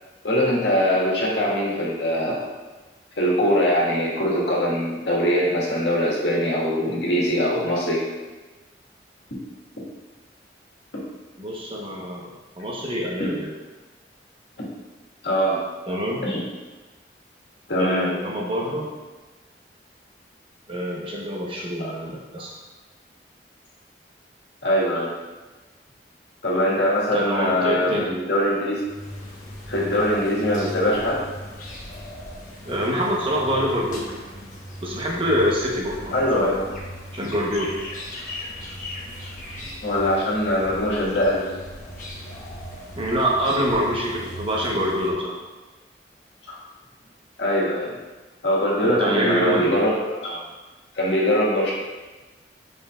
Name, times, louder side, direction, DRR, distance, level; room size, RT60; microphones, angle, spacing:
voice 1, 0.2-2.5 3.2-8.0 15.2-15.6 16.2-16.4 17.7-18.1 21.8-21.9 24.6-25.1 26.4-28.8 29.7-31.2 36.1-36.7 39.8-41.5 46.5-46.6 47.4-47.9 48.4-49.9 50.2-50.4 50.9-51.7, equal, 85° left, -5 dB, 1.8 m, -22 dB
voice 2, 11.4-13.5 15.9-16.2 17.8-18.9 20.7-22.5 27.1-28.1 32.6-34.0 34.8-36.5 37.1-37.8 43.0-45.4 48.8-49.8, equal, 30° right, -2 dB, 1.1 m, -25 dB
sound 1, 28.8-45.1, left 1 dB, 45° left, 1.3 m, -38 dB
7.9 x 5.2 x 2.5 m, 1.2 s
head